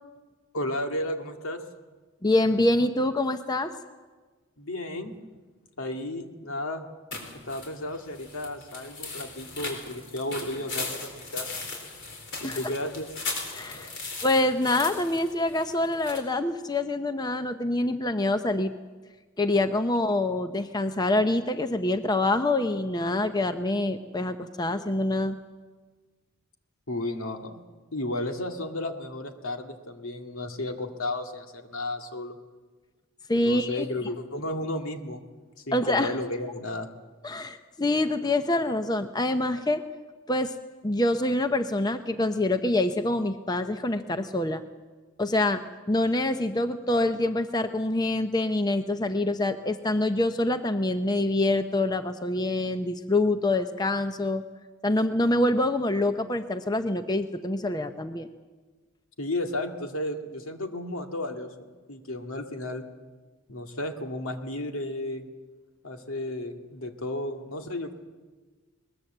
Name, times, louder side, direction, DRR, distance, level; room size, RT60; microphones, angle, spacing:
voice 1, 0.5-1.6 4.6-5.1 5.8-6.9 7.4-11.6 12.4-13.3 26.9-27.6 27.9-32.4 33.4-35.2 35.6-36.9 59.2-62.8 63.5-65.3 65.8-67.9, left 1 dB, 80° left, 4 dB, 2.0 m, -33 dB
voice 2, 2.2-3.7 12.4-12.6 13.5-14.0 14.2-18.7 19.4-25.4 33.3-33.9 35.7-36.1 37.2-39.8 40.3-40.5 40.8-44.6 45.2-54.4 54.8-58.3, left 2 dB, 20° left, 8 dB, 0.6 m, -26 dB
sound 1, 7.1-16.2, left 3 dB, 55° left, 4.1 m, -38 dB
21.0 x 20.5 x 7.9 m, 1.3 s
head